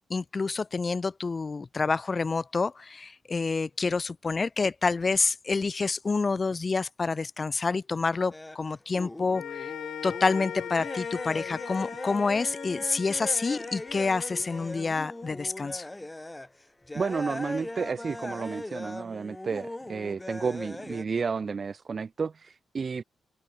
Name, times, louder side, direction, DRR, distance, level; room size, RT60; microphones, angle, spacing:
voice 1, 0.1-9.7 10.0-15.9, left 4 dB, 30° left, 0.7 m, -28 dB
sound 1, 8.3-8.6 8.9-16.5 16.8-21.0, left 1 dB, 10° left, 1.1 m, -39 dB
sound 2, 9.3-15.8, left 11 dB, 90° left, 6.5 m, -41 dB
voice 2, 16.9-23.0, right 5 dB, 40° right, 1.6 m, -31 dB
open air
cardioid pair, 120°, 0 cm